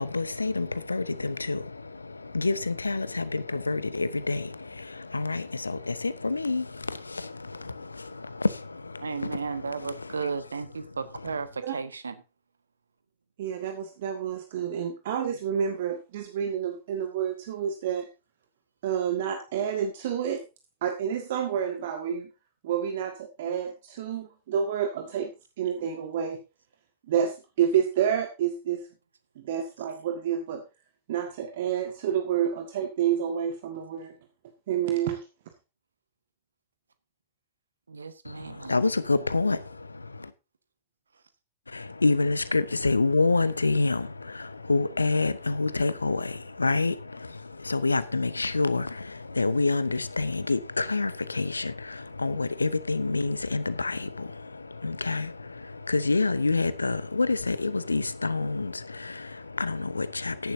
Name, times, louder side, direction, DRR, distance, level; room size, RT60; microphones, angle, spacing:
voice 1, 0.0-10.3 10.8-11.4 38.2-40.3 41.7-60.5, left 3 dB, 80° left, 0.8 m, -28 dB
voice 2, 9.0-12.1 37.9-38.7, right 5 dB, 75° right, 1.4 m, -34 dB
voice 3, 13.4-18.1 18.8-20.4 20.8-22.3 22.6-25.3 25.6-26.4 27.1-28.9 29.3-30.6 31.1-34.1 34.7-35.2, right 8 dB, 55° right, 1.6 m, -29 dB
15.0 x 11.0 x 2.7 m
figure-of-eight pair, 90°, 0 cm